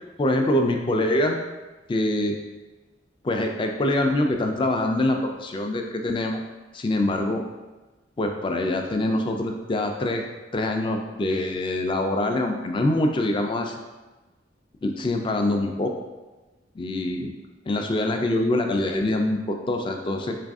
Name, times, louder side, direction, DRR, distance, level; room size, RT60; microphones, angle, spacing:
voice 1, 0.2-1.4 1.9-2.4 3.2-6.4 6.7-7.4 8.2-10.2 10.5-13.7 14.8-15.9 16.8-17.3 17.7-20.4, left 1 dB, 25° left, 3 dB, 0.3 m, -24 dB
4.0 x 2.5 x 3.5 m, 1.2 s
head